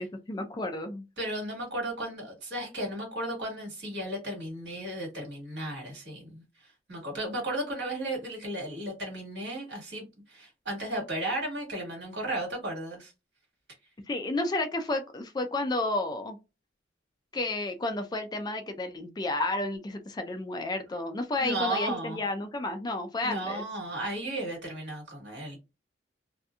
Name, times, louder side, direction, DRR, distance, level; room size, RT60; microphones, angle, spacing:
voice 1, 0.0-1.0 14.1-16.4 17.3-23.7, left 2 dB, 20° left, 0.3 m, -31 dB
voice 2, 1.2-13.1 21.4-22.2 23.2-25.6, right 1 dB, 65° right, 1.6 m, -35 dB
2.7 x 2.5 x 2.2 m
head